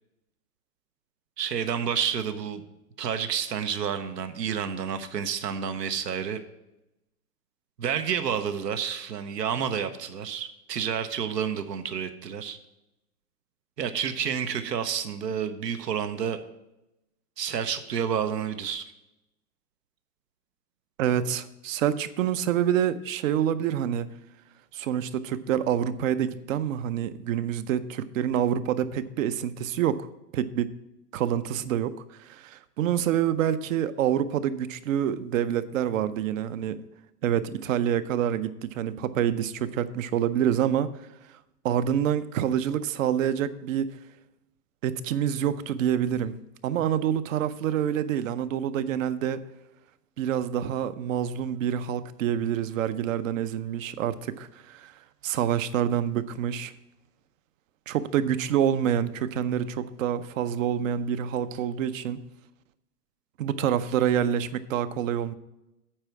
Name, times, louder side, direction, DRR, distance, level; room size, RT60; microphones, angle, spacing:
voice 1, 1.4-2.6 3.0-6.4 7.8-12.6 13.8-16.4 17.4-18.8, right 8 dB, 80° right, 8 dB, 1.0 m, -29 dB
voice 2, 21.0-24.1 24.7-30.1 30.3-30.7 31.1-31.9 32.2-36.8 37.2-40.9 41.6-43.9 44.8-46.4 46.6-49.4 50.2-54.9 55.2-56.7 57.9-62.2 63.4-65.3, right 9 dB, 55° right, 14 dB, 0.7 m, -27 dB
8.8 x 4.7 x 7.1 m, 0.91 s
hypercardioid pair, 130°, 48 cm